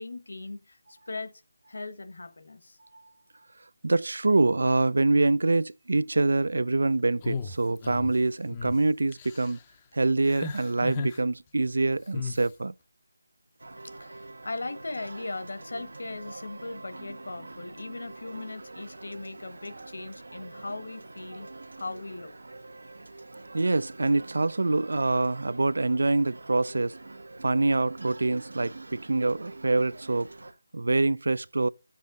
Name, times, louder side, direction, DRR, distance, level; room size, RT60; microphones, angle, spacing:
voice 1, 0.0-1.3 1.7-2.8 14.0-22.3, left 2 dB, 65° left, 1.2 m, -39 dB
voice 2, 3.8-9.6 9.9-12.7 23.5-26.9 27.4-30.3 30.7-31.7, right 2 dB, 70° right, 0.4 m, -25 dB
sound 1, 7.2-8.1 8.5-8.8 9.1-9.6 10.2-11.2 12.1-12.5, left 4 dB, 15° left, 0.5 m, -35 dB
sound 2, 13.6-30.5, right 2 dB, 85° right, 1.2 m, -45 dB
8.5 x 7.4 x 3.7 m
figure-of-eight pair, 175°, 0 cm